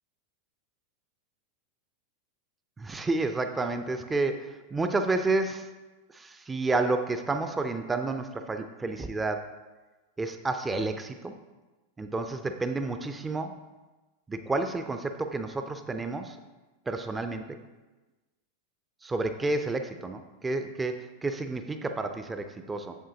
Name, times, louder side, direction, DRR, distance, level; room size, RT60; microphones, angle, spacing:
voice 1, 2.8-5.7 6.1-9.4 10.2-11.3 12.0-13.5 14.3-16.4 16.9-17.4 19.0-23.0, right 3 dB, 10° right, 7 dB, 0.5 m, -30 dB
7.9 x 7.7 x 2.8 m, 1.2 s
figure-of-eight pair, 90°, 0 cm